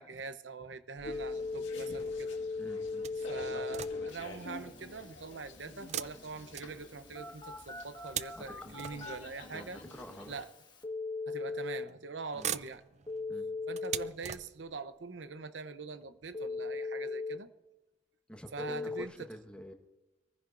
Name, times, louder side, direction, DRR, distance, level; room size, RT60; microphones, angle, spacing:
voice 1, 0.0-2.4 3.2-9.8 10.3-10.5 11.3-12.8 13.7-17.5 18.5-19.3, right 4 dB, 75° right, 0.8 m, -43 dB
sound 1, 1.0-10.5, left 2 dB, 80° left, 2.0 m, -50 dB
Telephone, 1.0-11.8 13.1-14.1 16.3-17.4 18.6-19.0, left 3 dB, 25° left, 1.5 m, -40 dB
voice 2, 2.6-3.1 8.3-9.1 9.4-10.3 12.3-12.5 13.3-13.5 18.3-19.7, equal, 5° left, 1.3 m, -48 dB
sound 2, 3.0-4.3 5.8-7.2 7.8-9.4 10.3-10.4 11.5-11.9 12.2-14.9 15.6-15.7 16.0-16.1, right 10 dB, 40° right, 0.4 m, -42 dB
25.5 x 15.0 x 2.6 m
head